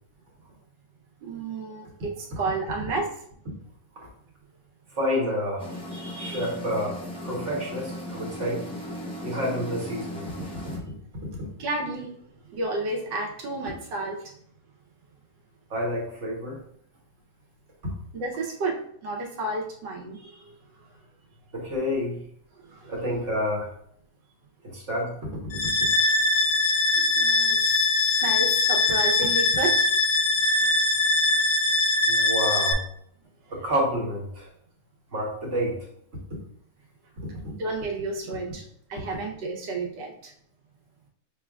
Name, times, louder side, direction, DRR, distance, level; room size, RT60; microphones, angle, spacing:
voice 1, 1.2-3.2 5.9-6.5 11.6-12.2 12.5-14.3 18.1-20.9 22.6-23.0 26.9-29.9 33.4-33.6 37.3-38.6 38.9-40.3, right 2 dB, 75° right, 0 dB, 1.5 m, -32 dB
voice 2, 4.9-5.7 6.2-7.0 7.2-8.7 9.2-10.2 15.7-16.6 21.5-22.2 22.9-23.7 24.6-25.2 25.6-25.7 32.1-32.8 33.5-34.5 35.1-35.8, equal, 45° right, -3 dB, 1.2 m, -28 dB
sound 1, 5.6-10.8, left 1 dB, 5° left, 0.4 m, -37 dB
sound 2, 25.5-32.7, left 3 dB, 70° left, 1.1 m, -22 dB
5.4 x 3.3 x 2.3 m, 0.66 s
omnidirectional pair, 2.0 m